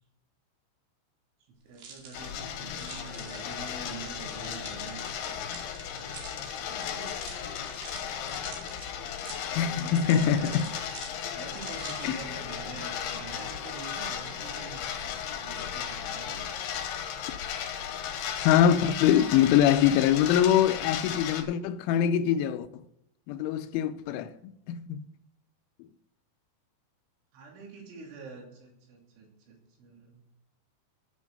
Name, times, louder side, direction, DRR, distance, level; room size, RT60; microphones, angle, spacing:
voice 1, 1.6-5.3 6.7-7.1 7.4-8.7 9.5-10.6 11.3-16.5 27.3-30.2, right 4 dB, 80° right, 5.2 m, -46 dB
sound 1, 1.7-12.3, right 5 dB, 60° right, 4.2 m, -48 dB
sound 2, 2.1-21.4, left 8 dB, 70° left, 2.9 m, -36 dB
voice 2, 9.5-10.6 12.0-12.2 18.4-22.8 23.3-24.3 24.7-25.1, left 10 dB, 85° left, 3.1 m, -23 dB
13.5 x 7.2 x 5.3 m
omnidirectional pair, 5.4 m